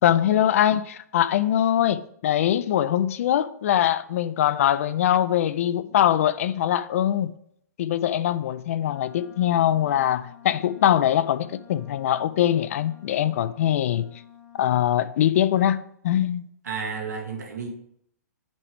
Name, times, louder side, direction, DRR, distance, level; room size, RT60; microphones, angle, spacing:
voice 1, 0.0-7.3 7.8-14.1 14.6-16.4, left 11 dB, 55° left, 0.4 m, -22 dB
Wind instrument woodwind instrument, 8.8-14.9, left 9 dB, 30° left, 1.1 m, -50 dB
voice 2, 16.6-17.7, right 5 dB, 70° right, 1.8 m, -32 dB
9.4 x 5.2 x 3.4 m
hypercardioid pair, 120°, 9 cm